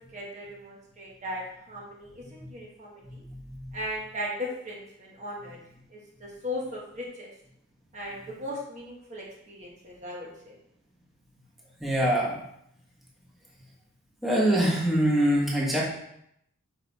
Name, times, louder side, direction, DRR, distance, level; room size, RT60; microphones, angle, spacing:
voice 1, 0.1-3.0 3.7-5.6 5.9-7.3 7.9-10.5, left 1 dB, 35° right, -3 dB, 1.2 m, -37 dB
voice 2, 3.0-3.8 11.8-12.4 14.2-15.8, right 1 dB, ahead, -5 dB, 1.4 m, -25 dB
6.7 x 5.0 x 4.1 m, 0.75 s
head